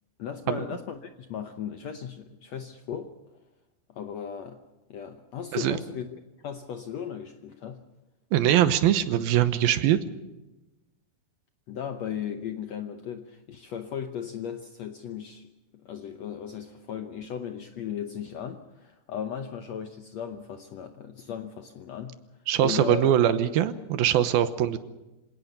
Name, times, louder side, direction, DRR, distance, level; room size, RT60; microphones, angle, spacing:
voice 1, 0.2-3.1 3.9-4.6 4.9-6.1 6.4-7.8 11.7-15.5 15.8-22.2 22.6-23.1, left 8 dB, 70° left, 7 dB, 1.6 m, -36 dB
voice 2, 8.3-10.0 22.5-24.8, right 11 dB, 80° right, 12 dB, 2.9 m, -22 dB
26.5 x 18.0 x 6.7 m, 1.0 s
omnidirectional pair, 4.3 m